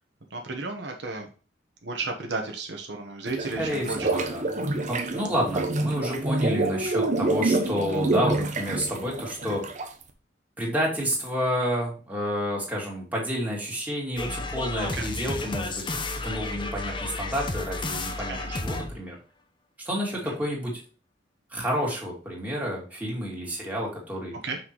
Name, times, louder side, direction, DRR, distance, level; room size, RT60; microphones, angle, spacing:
voice 1, 0.3-1.3 1.8-4.1 4.4-4.6 5.3-5.4 14.9-15.1 18.3-18.5 20.2-20.3 24.4-24.6, right 3 dB, 70° right, 2 dB, 1.2 m, -33 dB
sound 1, 3.3-10.0, right 2 dB, 40° right, 1.0 m, -27 dB
voice 2, 3.6-4.4 4.9-9.6 10.6-15.8 16.1-19.2 19.8-20.8 21.5-24.4, equal, 10° right, -3 dB, 2.5 m, -30 dB
sound 2, 14.2-19.0, left 2 dB, 25° left, 0.9 m, -32 dB
6.1 x 5.9 x 3.1 m, 0.37 s
head